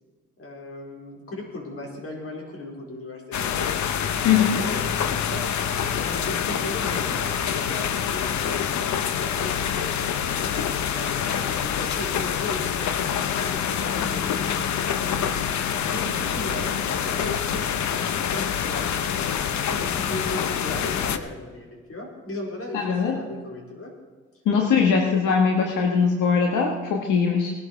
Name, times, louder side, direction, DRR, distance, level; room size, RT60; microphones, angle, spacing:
voice 1, 0.4-3.7 4.6-10.0 10.3-15.5 15.9-23.9, left 2 dB, 50° left, 0 dB, 4.4 m, -37 dB
sound 1, 3.3-21.2, left 8 dB, 70° left, 1.0 m, -26 dB
voice 2, 4.2-4.6 22.7-23.2 24.4-27.5, left 6 dB, 85° left, 2 dB, 1.7 m, -21 dB
19.0 x 11.5 x 4.6 m, 1.4 s
cardioid pair, 90°, 30 cm